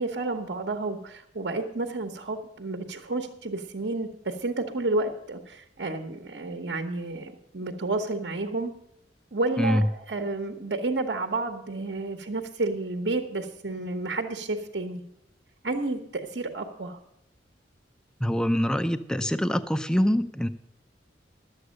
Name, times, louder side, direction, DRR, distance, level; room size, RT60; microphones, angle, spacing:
voice 1, 0.0-8.7 9.3-15.0 15.6-17.0, right 2 dB, 70° right, 5 dB, 1.1 m, -31 dB
voice 2, 18.2-20.5, equal, 5° left, 10 dB, 0.5 m, -24 dB
12.0 x 8.0 x 6.5 m, 0.80 s
head